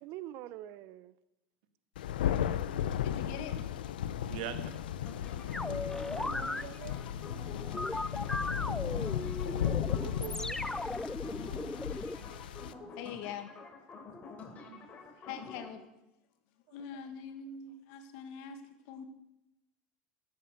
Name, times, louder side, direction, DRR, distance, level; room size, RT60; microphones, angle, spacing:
voice 1, 0.0-1.2 6.1-7.0 10.0-10.6 16.7-16.8, right 13 dB, 60° right, 16 dB, 0.8 m, -45 dB
Thunder, 1.9-12.7, left 10 dB, 90° left, 0.6 m, -35 dB
voice 2, 3.0-3.7 12.9-13.5 14.5-14.7 15.2-15.8 16.7-19.0, left 7 dB, 70° left, 8 dB, 1.8 m, -44 dB
voice 3, 4.3-4.6 5.6-5.9 8.6-9.9 11.4-12.6 12.9-13.0 14.5-15.0, right 9 dB, 75° right, 9 dB, 1.6 m, -47 dB
sound 1, 5.1-15.7, left 4 dB, 30° left, 3.3 m, -49 dB
sound 2, 5.5-6.6 7.7-12.2, left 2 dB, 5° left, 0.5 m, -37 dB
13.5 x 8.7 x 6.7 m, 0.93 s
supercardioid pair, 100°, 5 cm